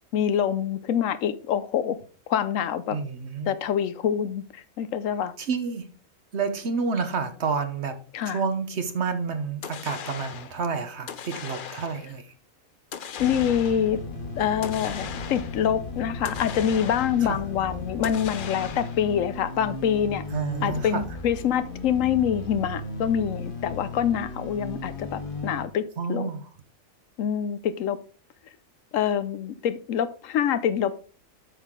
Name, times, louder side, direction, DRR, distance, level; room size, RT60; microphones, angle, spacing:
voice 1, 0.1-2.0 2.3-3.0 3.5-5.3 8.1-8.4 13.2-14.0 14.4-20.2 20.6-25.8 26.1-26.3 27.2-28.0 28.9-31.0, left 9 dB, 70° left, 0.9 m, -25 dB
voice 2, 2.9-3.5 5.4-5.8 6.3-7.9 8.2-12.2 17.3-17.4 20.3-21.0 26.0-26.4, right 5 dB, 55° right, 1.1 m, -29 dB
sound 1, 9.6-10.6 11.1-12.1 12.9-14.0 14.6-15.7 16.3-17.3 18.0-19.1, left 7 dB, 55° left, 0.6 m, -38 dB
sound 2, 13.2-25.7, left 3 dB, 40° left, 1.6 m, -36 dB
8.2 x 6.3 x 3.7 m
omnidirectional pair, 1.5 m